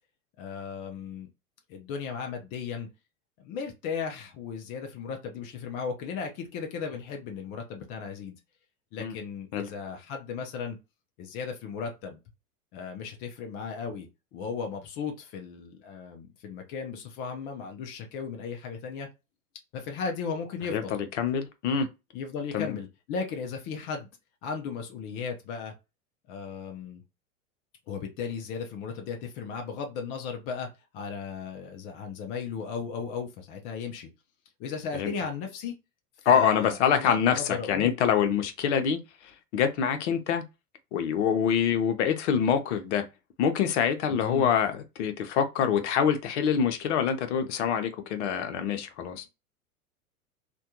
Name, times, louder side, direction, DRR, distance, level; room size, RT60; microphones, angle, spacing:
voice 1, 0.4-1.3 1.7-2.9 3.4-8.4 8.9-10.8 11.2-12.2 12.7-19.1 19.7-21.0 22.1-24.1 24.4-25.7 26.3-27.0 27.9-30.7 30.9-34.1 34.6-35.7 36.3-37.9 44.1-44.5, left 6 dB, 20° left, 0.3 m, -36 dB
voice 2, 20.7-21.9 22.5-22.8 34.9-35.1 36.2-40.4 40.9-43.0 43.4-49.2, left 7 dB, 50° left, 0.7 m, -25 dB
3.3 x 2.2 x 2.8 m
figure-of-eight pair, 95°, 44 cm